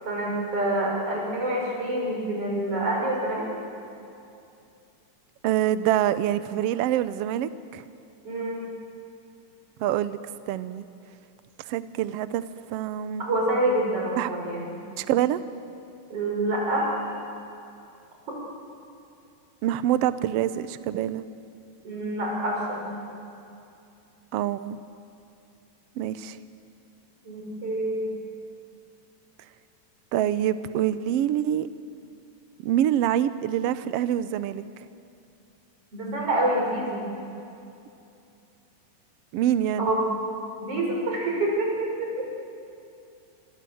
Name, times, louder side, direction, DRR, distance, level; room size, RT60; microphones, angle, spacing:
voice 1, 0.1-3.5 8.3-8.7 13.2-14.8 16.1-16.9 21.8-22.9 27.3-28.1 35.9-37.1 39.8-40.0 40.6-41.9 42.2-42.3, right 1 dB, 45° right, -2 dB, 6.9 m, -27 dB
voice 2, 5.4-7.8 9.8-10.2 10.5-10.8 11.6-12.4 12.7-13.2 14.2-14.3 15.0-15.4 19.6-21.2 24.3-24.8 26.0-26.4 30.1-31.7 32.6-34.6 39.3-39.9, right 11 dB, 85° right, 13 dB, 1.3 m, -25 dB
29.0 x 25.0 x 7.8 m, 2.7 s
omnidirectional pair, 3.7 m